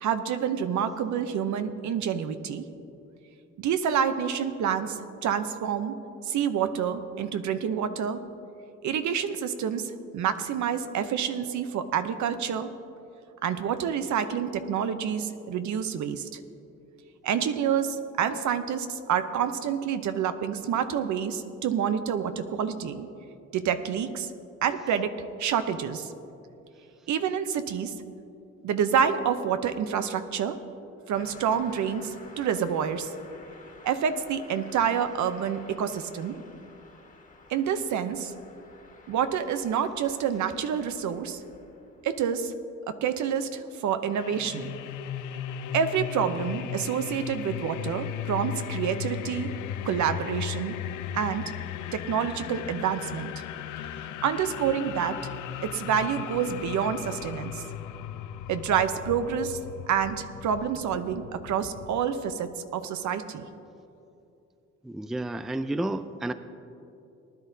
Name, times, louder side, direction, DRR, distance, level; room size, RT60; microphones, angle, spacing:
voice 1, 0.0-2.6 3.6-5.9 6.2-8.2 8.8-12.7 13.4-16.3 17.2-23.1 23.5-24.3 24.6-26.1 27.1-27.9 28.6-30.6 31.1-33.1 33.8-36.4 37.5-38.3 39.1-41.4 42.0-42.5 42.9-44.7 45.7-49.6 49.8-50.8 51.1-51.4 51.9-53.3 53.9-55.2 55.6-57.6 58.5-59.6 59.9-63.5, right 8 dB, 70° right, 10 dB, 0.8 m, -28 dB
Car passing by, 31.1-42.6, left 3 dB, 25° left, 1.6 m, -51 dB
sound 1, 44.1-62.1, left 9 dB, 80° left, 0.6 m, -37 dB
voice 2, 64.8-66.3, right 1 dB, ahead, 11 dB, 0.3 m, -31 dB
19.5 x 11.0 x 2.7 m, 2.8 s
cardioid pair, 90°, 30 cm